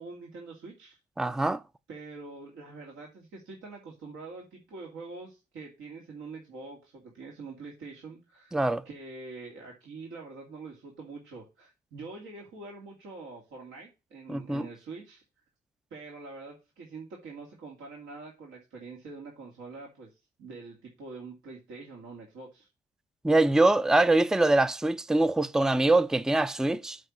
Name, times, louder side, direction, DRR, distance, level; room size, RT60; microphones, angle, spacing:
voice 1, 0.0-1.0 1.9-8.5 8.8-15.2 15.9-22.7, right 3 dB, 80° right, 2.5 m, -45 dB
voice 2, 1.2-1.6 8.5-8.8 14.3-14.7 23.2-27.0, right 2 dB, 5° right, 0.4 m, -23 dB
7.7 x 4.6 x 6.1 m
cardioid pair, 90°, 20 cm